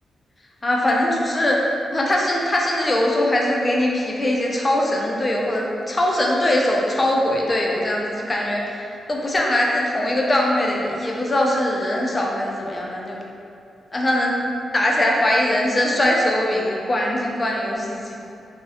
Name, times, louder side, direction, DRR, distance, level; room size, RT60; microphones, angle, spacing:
voice 1, 0.6-1.6 1.9-13.2 13.9-14.4 14.7-18.1, left 1 dB, 25° left, -2 dB, 0.3 m, -21 dB
2.3 x 2.0 x 2.7 m, 2.5 s
cardioid pair, 100°, 0 cm